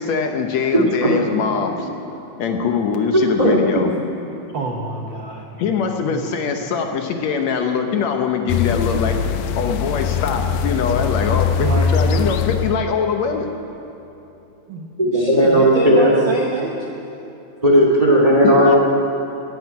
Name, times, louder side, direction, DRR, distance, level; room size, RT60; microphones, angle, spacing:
voice 1, 0.0-1.9 2.4-3.9 5.6-9.2 9.6-13.5 18.4-18.8, left 6 dB, 70° left, 4 dB, 2.0 m, -22 dB
voice 2, 0.7-1.1 3.1-3.8 15.0-16.1 17.6-18.8, equal, 15° right, -1 dB, 1.4 m, -15 dB
voice 3, 4.5-5.4 6.1-6.3 11.6-11.9 14.7-16.8, right 3 dB, 60° right, -1 dB, 1.3 m, -27 dB
sound 1, 8.5-12.8, left 6 dB, 90° left, 2.2 m, -21 dB
14.0 x 10.5 x 9.4 m, 2.8 s
omnidirectional pair, 3.6 m